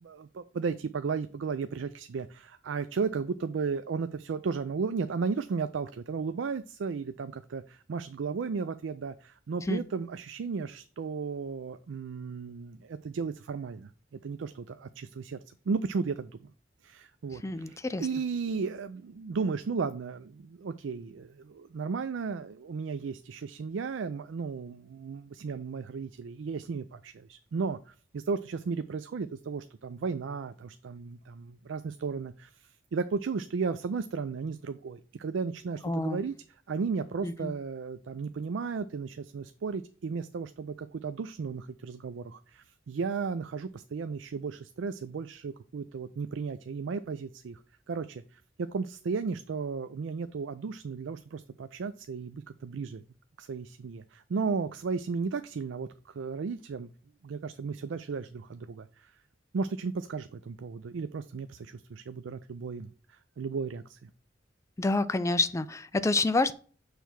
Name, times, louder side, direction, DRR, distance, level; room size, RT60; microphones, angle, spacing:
voice 1, 0.0-15.4 15.7-16.5 16.8-36.4 36.7-53.0 53.4-56.9 57.2-59.1 59.5-64.1, right 5 dB, 85° right, 11 dB, 0.4 m, -34 dB
voice 2, 17.4-18.1 35.8-36.2 37.2-37.5 64.8-66.5, left 2 dB, 15° left, 13 dB, 0.4 m, -28 dB
6.4 x 3.5 x 5.9 m, 0.42 s
head